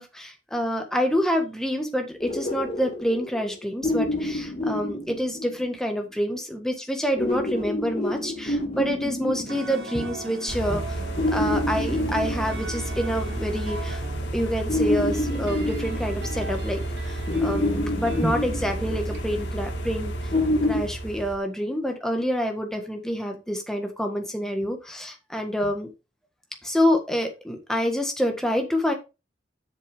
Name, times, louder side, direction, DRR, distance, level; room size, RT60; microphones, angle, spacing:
voice 1, 0.0-11.0 11.3-14.0 14.3-20.3 20.6-25.9 26.6-28.9, equal, 5° left, 1.5 m, -27 dB
sound 1, 2.2-5.9 7.2-10.5 11.2-13.3 14.7-16.8 17.3-19.3 20.3-20.8, left 1 dB, 30° left, 2.3 m, -28 dB
sound 2, 9.5-19.3, right 3 dB, 60° right, 1.2 m, -40 dB
sound 3, 10.5-21.4, right 1 dB, 75° left, 1.9 m, -31 dB
8.0 x 6.8 x 3.6 m
head